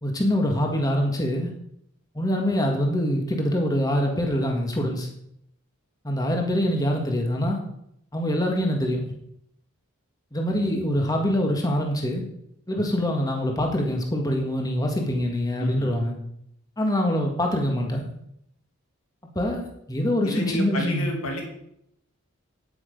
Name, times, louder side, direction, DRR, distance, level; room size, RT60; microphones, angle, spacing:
voice 1, 0.0-1.5 2.1-5.1 6.0-7.6 8.1-9.1 10.3-12.2 12.7-16.1 16.8-18.1 19.3-21.1, equal, 15° left, 1 dB, 1.7 m, -24 dB
voice 2, 15.6-15.9 20.2-21.4, equal, 75° left, 2 dB, 2.5 m, -31 dB
9.9 x 8.9 x 5.3 m, 0.75 s
head